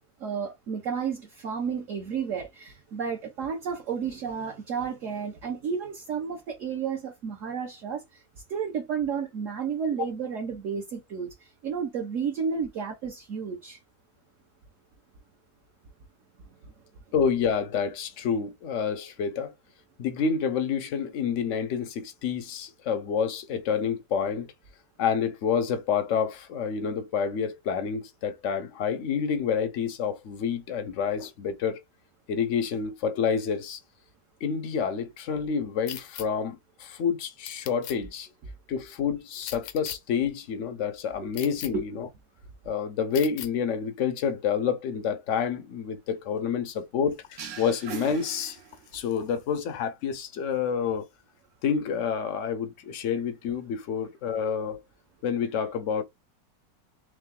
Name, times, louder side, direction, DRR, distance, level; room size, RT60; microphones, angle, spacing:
voice 1, 0.2-8.2 8.5-13.8 41.2-41.3 41.7-41.8, right 6 dB, 55° right, 1.0 m, -32 dB
voice 2, 17.1-19.5 20.0-24.5 25.0-31.8 32.3-33.8 34.4-38.3 38.7-42.1 42.6-48.6 48.9-51.1 51.6-54.8 55.2-56.0, left 7 dB, 65° left, 0.7 m, -28 dB
sound 1, 35.9-36.3 37.5-38.0 39.4-40.0 41.3-41.7 43.1-43.5, left 11 dB, 85° left, 1.3 m, -38 dB
sound 2, 47.4-49.1, right 8 dB, 85° right, 1.6 m, -40 dB
3.7 x 3.1 x 3.6 m
omnidirectional pair, 2.0 m